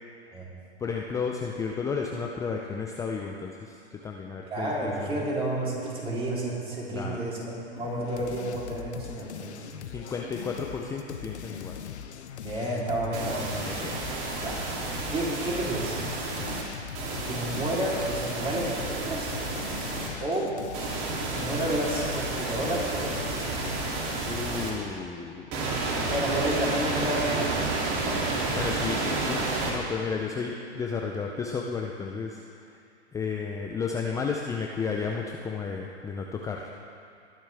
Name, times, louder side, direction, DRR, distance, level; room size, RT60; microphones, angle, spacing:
voice 1, 0.8-5.1 6.9-7.2 9.6-11.8 13.6-14.0 24.3-25.8 28.5-32.8 33.1-36.7, left 5 dB, 10° left, 0 dB, 0.5 m, -33 dB
voice 2, 4.5-7.5 7.8-9.6 12.4-13.5 14.4-14.5 15.1-16.0 17.2-19.3 20.2-20.6 21.3-23.3 26.0-27.6 28.0-28.2, right 1 dB, 15° right, -5 dB, 3.5 m, -30 dB
sound 1, 7.8-24.3, left 8 dB, 70° left, 1.0 m, -41 dB
sound 2, 13.1-16.6 16.9-20.1 20.7-24.7 25.5-29.7, right 3 dB, 45° right, 3.0 m, -31 dB
20.5 x 10.5 x 3.5 m, 2.4 s
hypercardioid pair, 120°, 35 cm